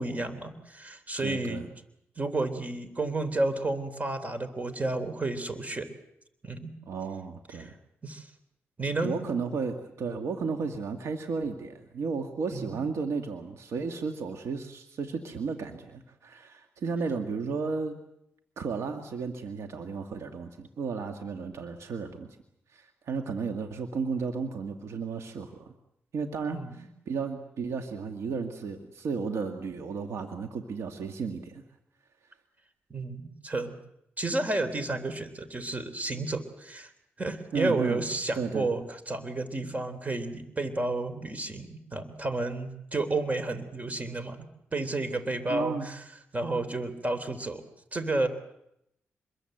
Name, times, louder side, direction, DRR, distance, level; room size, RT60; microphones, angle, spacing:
voice 1, 0.0-1.6 2.2-5.9 6.4-6.7 7.6-7.7 8.0-8.3 8.8-9.3 12.5-12.9 26.5-26.9 32.9-33.8 34.2-36.9 37.2-44.4 44.7-46.0 46.3-47.6 47.9-48.3, right 2 dB, 30° right, 11 dB, 3.6 m, -31 dB
voice 2, 1.2-1.7 6.9-7.7 9.0-18.0 18.6-22.3 22.7-25.6 26.1-31.6 37.5-38.0 38.3-38.7 45.5-45.9, right 5 dB, 80° right, 5 dB, 1.9 m, -33 dB
26.5 x 22.0 x 8.0 m, 0.79 s
cardioid pair, 65°, 5 cm